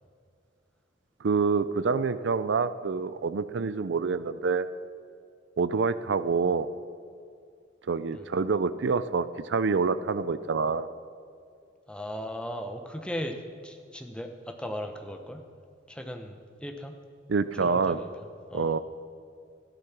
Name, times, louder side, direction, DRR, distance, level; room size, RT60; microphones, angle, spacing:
voice 1, 1.2-4.7 5.6-6.7 7.9-10.9 17.3-18.0 18.5-18.8, right 4 dB, 70° right, 14 dB, 0.5 m, -27 dB
voice 2, 11.9-15.4 15.9-16.9 17.5-18.1 18.5-18.8, equal, 5° left, 5 dB, 0.9 m, -37 dB
13.5 x 11.5 x 5.9 m, 2.3 s
head